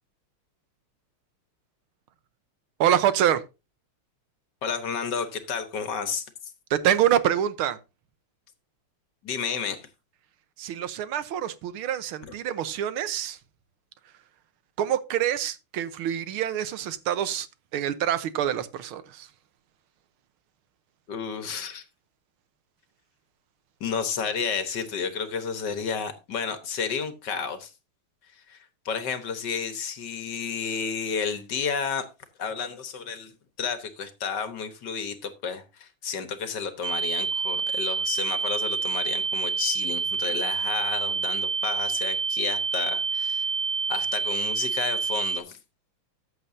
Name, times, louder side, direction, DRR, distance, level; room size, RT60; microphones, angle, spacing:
voice 1, 2.8-3.4 6.7-7.8 10.6-13.4 14.8-17.5 17.7-19.3, right 10 dB, 85° right, 1.7 m, -26 dB
voice 2, 4.6-6.3 9.2-9.9 12.2-12.3 21.1-21.8 23.8-27.7 28.5-28.6 28.8-32.1 32.4-33.3 33.6-43.4 43.9-45.6, left 6 dB, 60° left, 1.6 m, -31 dB
sound 1, 36.8-45.4, right 5 dB, 65° right, 0.6 m, -28 dB
14.0 x 7.8 x 2.6 m
omnidirectional pair, 2.3 m